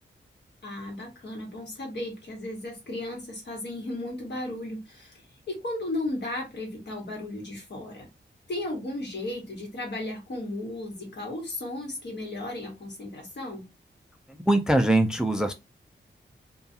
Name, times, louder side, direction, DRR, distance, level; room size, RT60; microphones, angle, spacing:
voice 1, 0.6-5.2 5.5-8.1 8.5-13.6, left 1 dB, 70° left, 1.3 m, -35 dB
voice 2, 14.5-15.5, right 1 dB, 5° right, 0.3 m, -22 dB
2.3 x 2.3 x 2.7 m
wide cardioid pair, 85°, 19 cm